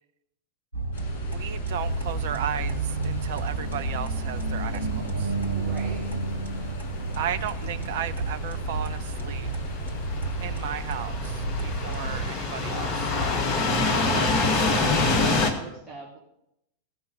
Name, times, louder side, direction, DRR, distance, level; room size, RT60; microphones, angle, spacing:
sound 1, 0.7-12.3, right 3 dB, 85° right, 1.7 m, -31 dB
sound 2, 0.9-15.5, left 5 dB, 50° left, 4.8 m, -45 dB
voice 1, 1.3-5.3 7.2-9.5 10.4-13.1, right 10 dB, 55° right, 9 dB, 0.7 m, -35 dB
sound 3, 1.8-15.5, left 3 dB, 30° left, 2.0 m, -28 dB
voice 2, 5.5-6.3 7.5-7.7 15.0-16.2, right 5 dB, 15° right, -6 dB, 3.3 m, -42 dB
16.0 x 5.8 x 9.4 m, 0.79 s
figure-of-eight pair, 90°, 0 cm